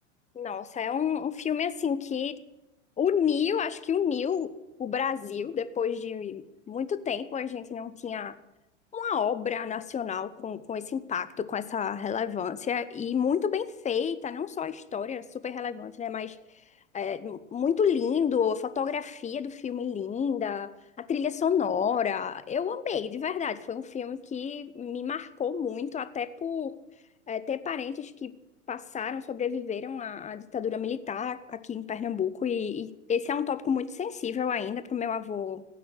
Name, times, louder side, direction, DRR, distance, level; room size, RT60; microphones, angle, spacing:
voice 1, 0.3-2.4 3.0-4.5 4.8-8.3 8.9-16.4 16.9-26.7 27.3-28.3 28.7-35.7, left 7 dB, 20° left, 14 dB, 0.9 m, -30 dB
16.0 x 9.4 x 9.6 m, 0.92 s
hypercardioid pair, 95°, 37 cm